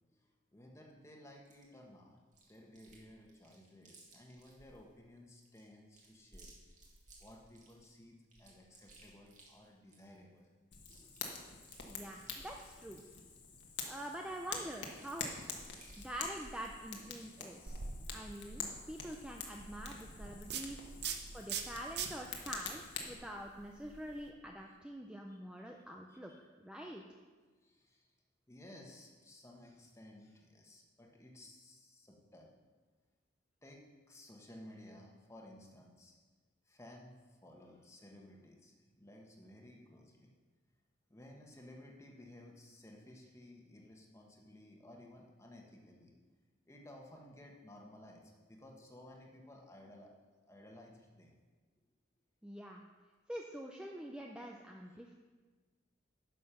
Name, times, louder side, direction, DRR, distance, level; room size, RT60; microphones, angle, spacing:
voice 1, 0.1-2.2 2.5-6.7 7.2-10.5 10.9-11.2 15.9-16.1 17.7-18.1 18.6-18.7 20.9-21.4 22.3-22.4 25.3-25.4 25.7-25.8 26.1-26.4 27.6-28.1 28.5-32.5 33.6-36.2 36.7-40.3 41.1-46.1 46.6-50.1 50.5-51.4, left 1 dB, 15° left, 0 dB, 1.3 m, -57 dB
Chewing mastication, 1.4-1.6 2.3-3.0 3.3-4.8 5.3-7.8 8.3-10.2 10.4-10.5 10.7-13.2 13.8-16.8, right 1 dB, 40° right, 2.1 m, -59 dB
Fire, 10.7-23.1, left 5 dB, 70° left, 1.4 m, -47 dB
voice 2, 11.9-13.0 13.8-15.3 16.0-17.7 18.1-20.9 21.3-26.3 26.6-27.0 52.4-52.8 53.3-55.1, equal, 5° right, 1 dB, 0.5 m, -46 dB
sound 1, 17.7-24.3, right 6 dB, 60° right, 0.9 m, -45 dB
10.0 x 6.6 x 5.7 m, 1.4 s
head